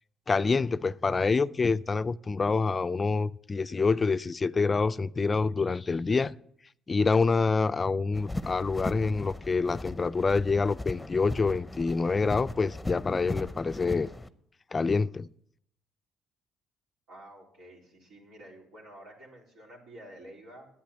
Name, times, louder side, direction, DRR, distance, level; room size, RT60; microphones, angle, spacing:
voice 1, 0.3-6.4 6.9-14.1 14.7-15.3, left 4 dB, 30° left, 0.3 m, -26 dB
sound 1, 8.1-14.3, left 2 dB, 10° left, 0.8 m, -38 dB
voice 2, 17.1-20.7, right 1 dB, 80° right, 3.9 m, -50 dB
10.5 x 8.5 x 6.9 m
supercardioid pair, 70°, 0 cm